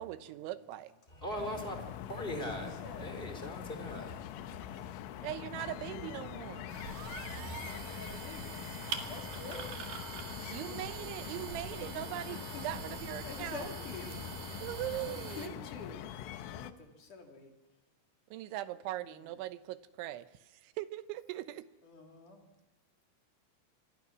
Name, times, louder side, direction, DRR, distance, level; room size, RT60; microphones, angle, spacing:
voice 1, 0.0-0.9 5.2-6.8 10.5-13.7 14.6-15.6 18.3-21.7, right 14 dB, 80° right, 3.3 m, -40 dB
voice 2, 1.1-4.9, equal, 15° left, 3.1 m, -41 dB
sound 1, 1.4-16.7, left 11 dB, 85° left, 3.3 m, -44 dB
voice 3, 2.6-3.0 4.6-4.7 7.0-9.7 10.6-11.1 12.0-12.1 12.5-12.6 13.2-14.3 14.9-16.2 16.5-17.5 21.8-22.5, left 4 dB, 45° left, 4.4 m, -48 dB
sound 2, 6.7-15.5, right 7 dB, 60° right, 3.4 m, -44 dB
26.5 x 22.0 x 6.1 m
omnidirectional pair, 5.5 m